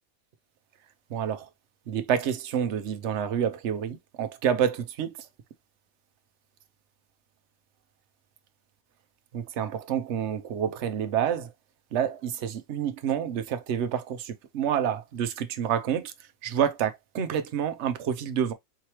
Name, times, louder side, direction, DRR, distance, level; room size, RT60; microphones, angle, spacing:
voice 1, 1.1-1.5 1.9-5.1 9.3-11.5 11.9-16.1 16.4-18.5, right 8 dB, 60° right, 0.9 m, -28 dB
4.8 x 3.1 x 2.9 m
omnidirectional pair, 1.5 m